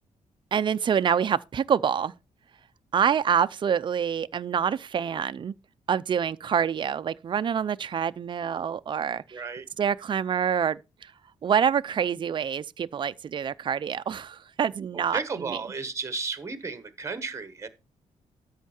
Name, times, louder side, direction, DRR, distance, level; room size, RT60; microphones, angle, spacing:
voice 1, 0.5-2.1 2.9-5.5 5.9-9.4 9.8-11.1 11.4-15.6, right 8 dB, 40° right, 0.5 m, -26 dB
voice 2, 9.3-9.7 15.1-17.7, right 4 dB, 20° right, 1.2 m, -33 dB
13.0 x 5.7 x 4.3 m
wide cardioid pair, 160°, 13 cm